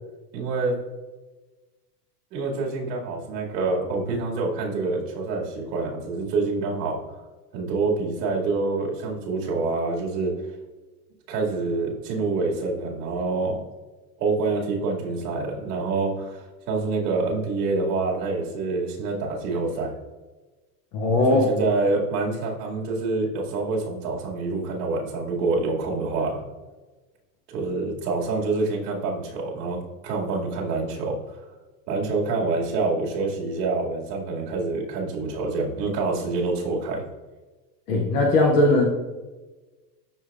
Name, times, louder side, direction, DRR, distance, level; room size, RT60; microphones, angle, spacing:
voice 1, 0.3-0.8 2.3-7.0 7.5-10.3 11.3-13.6 14.2-19.9 21.3-26.4 27.5-31.4 31.9-37.1, right 3 dB, 85° right, -2 dB, 2.2 m, -26 dB
voice 2, 20.9-21.5 37.9-38.9, left 2 dB, 20° left, -1 dB, 0.3 m, -19 dB
12.0 x 4.8 x 2.4 m, 1.2 s
supercardioid pair, 165°, 48 cm